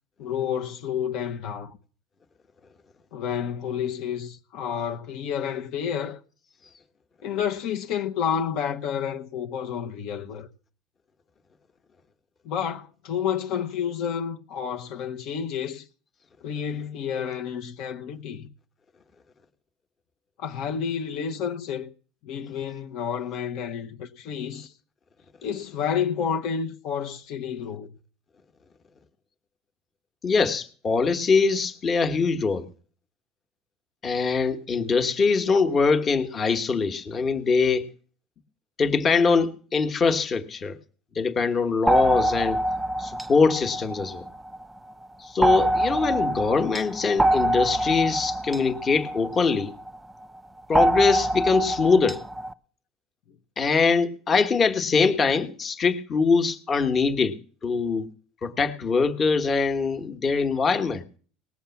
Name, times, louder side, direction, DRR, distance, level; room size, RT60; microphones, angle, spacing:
voice 1, 0.2-1.8 3.1-6.2 7.2-10.5 12.4-15.9 16.4-18.5 20.4-21.9 22.2-24.7 25.4-27.9, left 8 dB, 65° left, 1.0 m, -30 dB
voice 2, 30.2-32.7 34.0-37.9 38.8-40.8 41.1-42.6 43.0-44.2 45.2-49.7 50.7-52.2 53.6-57.4 57.6-58.1 58.4-61.0, left 4 dB, 30° left, 1.3 m, -23 dB
sound 1, 41.9-44.6 45.4-50.0 50.7-52.5, right 1 dB, 10° right, 0.6 m, -25 dB
18.5 x 7.2 x 7.0 m
cardioid pair, 125°, 0 cm